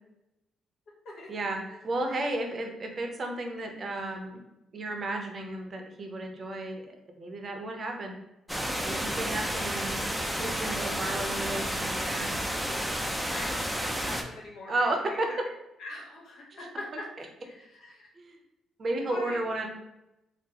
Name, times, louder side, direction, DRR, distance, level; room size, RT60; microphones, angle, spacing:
voice 1, 1.3-4.4 4.7-6.9 7.2-8.1 8.8-10.0 10.4-12.4 14.7-15.3 16.5-16.7 17.2-17.3 18.2-18.4 18.8-19.7, right 2 dB, 40° right, 3 dB, 0.6 m, -33 dB
sound 1, 8.5-14.2, equal, ahead, 0.4 m, -31 dB
voice 2, 13.1-15.4 15.8-17.0 17.4-18.1 19.1-19.4, left 2 dB, 75° left, -3 dB, 1.1 m, -42 dB
3.7 x 2.0 x 2.9 m, 0.90 s
cardioid pair, 90°, 0 cm